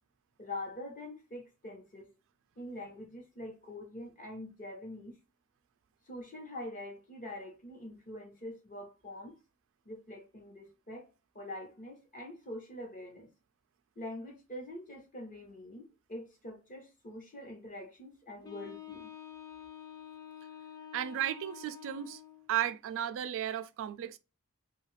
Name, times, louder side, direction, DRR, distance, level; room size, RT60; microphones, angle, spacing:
voice 1, 0.4-2.1 2.6-5.1 6.1-9.4 9.8-13.3 14.0-19.1, left 1 dB, 40° left, 0.9 m, -44 dB
Wind instrument woodwind instrument, 18.4-22.5, left 10 dB, 15° left, 0.4 m, -48 dB
voice 2, 20.9-22.2 22.5-24.2, right 11 dB, 60° right, 0.3 m, -34 dB
2.7 x 2.4 x 3.1 m
head